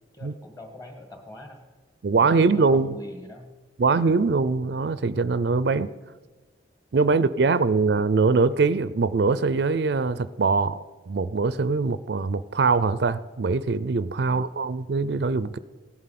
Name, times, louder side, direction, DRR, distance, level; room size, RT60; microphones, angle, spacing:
voice 1, 0.1-1.6 2.1-3.5 3.8-4.0 14.2-14.5, left 1 dB, 20° left, 4 dB, 1.9 m, -44 dB
voice 2, 2.0-3.0 3.8-5.9 6.9-10.8 11.1-15.6, right 4 dB, 60° right, 16 dB, 0.4 m, -22 dB
16.5 x 11.5 x 5.9 m, 1.3 s
head